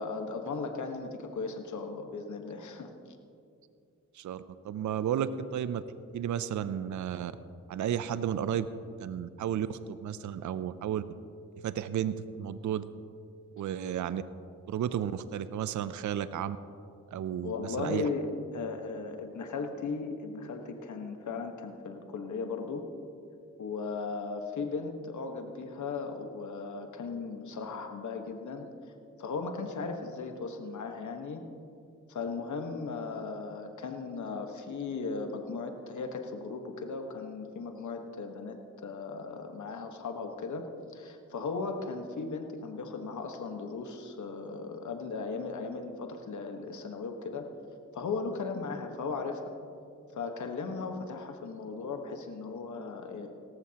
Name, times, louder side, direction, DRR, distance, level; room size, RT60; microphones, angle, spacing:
voice 1, 0.0-2.9 17.4-18.3 18.5-22.8 23.6-28.7 29.2-31.4 32.1-40.7 40.9-47.5 47.9-49.5 50.1-53.3, left 4 dB, 65° left, 4 dB, 1.4 m, -37 dB
voice 2, 4.1-5.8 6.1-7.3 7.7-8.7 9.0-11.0 11.6-12.8 13.6-14.2 14.7-16.6 17.1-18.1, right 9 dB, 65° right, 13 dB, 0.5 m, -33 dB
18.0 x 14.0 x 2.9 m, 2.5 s
cardioid pair, 70°, 31 cm